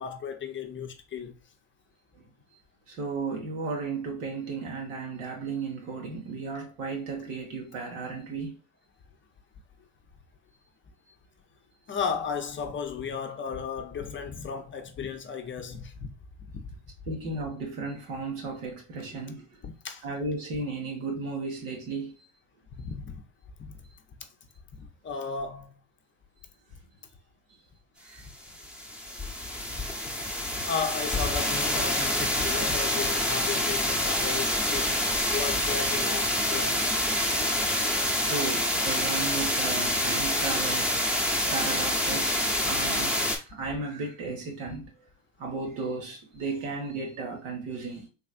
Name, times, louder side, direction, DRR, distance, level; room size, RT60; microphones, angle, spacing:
voice 1, 0.0-1.3 11.9-16.1 16.4-16.6 19.6-20.0 22.7-23.2 23.6-23.7 24.8-25.7 30.5-35.0 35.3-36.9, left 6 dB, 30° left, 0.6 m, -34 dB
voice 2, 2.9-8.6 17.1-19.5 20.0-22.2 27.5-27.6 28.0-28.3 30.0-30.1 37.7-37.8 38.3-41.0 41.5-44.9 45.4-48.1, right 3 dB, 80° right, 1.5 m, -34 dB
sound 1, 28.4-43.4, left 1 dB, ahead, 0.9 m, -27 dB
3.4 x 3.2 x 2.4 m
supercardioid pair, 90°, 39 cm